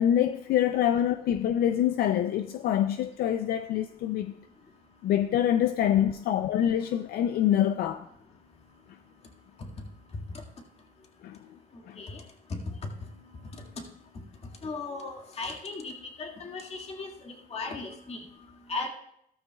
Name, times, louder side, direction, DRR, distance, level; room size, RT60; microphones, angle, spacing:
voice 1, 0.0-4.3 5.0-8.0 11.2-11.4 11.9-12.0, left 10 dB, 65° left, 0.5 m, -25 dB
voice 2, 14.6-18.2 18.7-18.9, left 3 dB, 35° left, 1.9 m, -37 dB
13.5 x 13.0 x 2.3 m
cardioid pair, 110°, 17 cm